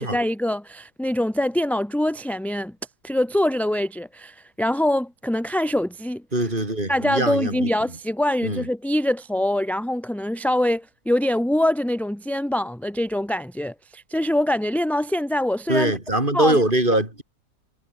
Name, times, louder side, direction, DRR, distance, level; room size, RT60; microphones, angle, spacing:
voice 1, 0.0-2.7 3.0-6.2 6.9-15.9 16.3-16.6, left 1 dB, ahead, 1.2 m, -24 dB
voice 2, 6.3-7.7 8.4-8.7 15.7-17.2, right 1 dB, 30° right, 5.6 m, -22 dB
omnidirectional pair, 1.9 m